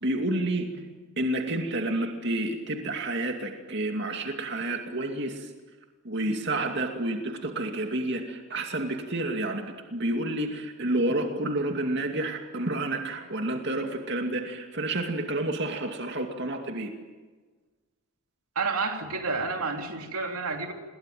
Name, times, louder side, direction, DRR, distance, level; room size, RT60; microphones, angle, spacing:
voice 1, 0.0-5.5 6.0-16.9, right 1 dB, 55° right, 3 dB, 2.5 m, -30 dB
voice 2, 18.5-20.7, right 4 dB, 90° right, 3 dB, 3.2 m, -30 dB
28.0 x 21.5 x 9.2 m, 1.4 s
head